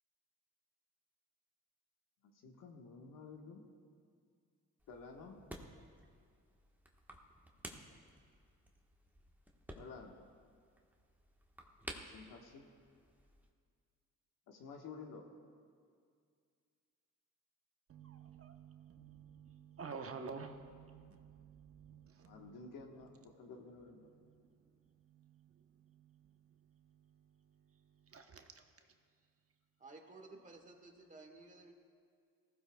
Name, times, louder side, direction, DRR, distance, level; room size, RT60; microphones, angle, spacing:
voice 1, 2.2-3.6 4.9-5.4 9.7-10.2 12.1-12.7 14.5-15.3 22.2-24.1, left 4 dB, 85° left, 2 dB, 1.5 m, -52 dB
sound 1, 4.8-13.5, right 1 dB, 5° right, 1.3 m, -54 dB
voice 2, 17.9-22.7 24.1-28.7, right 5 dB, 45° right, 5 dB, 1.0 m, -52 dB
voice 3, 29.8-31.7, right 3 dB, 25° right, 2 dB, 1.6 m, -55 dB
19.0 x 15.0 x 2.3 m, 2.2 s
cardioid pair, 90°, 32 cm